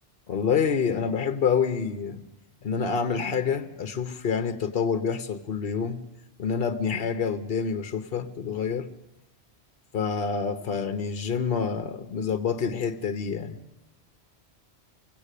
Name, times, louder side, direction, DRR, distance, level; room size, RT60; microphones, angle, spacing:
voice 1, 0.3-2.2 2.6-6.0 6.4-8.9 9.9-13.6, left 6 dB, 60° left, 1.2 m, -27 dB
24.0 x 17.5 x 8.3 m
omnidirectional pair, 1.1 m